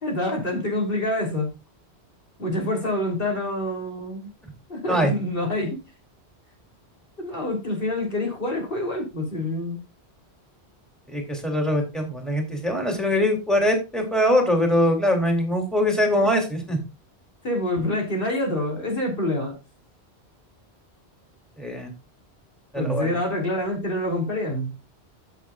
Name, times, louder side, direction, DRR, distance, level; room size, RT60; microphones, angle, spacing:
voice 1, 0.0-1.5 2.4-4.3 4.7-5.8 7.2-9.8 17.4-19.5 22.8-24.7, left 1 dB, 55° left, 1 dB, 3.6 m, -26 dB
voice 2, 11.1-16.8 21.6-21.9 22.7-23.1, equal, ahead, 2 dB, 2.9 m, -22 dB
13.0 x 6.7 x 2.5 m, 0.28 s
omnidirectional pair, 1.1 m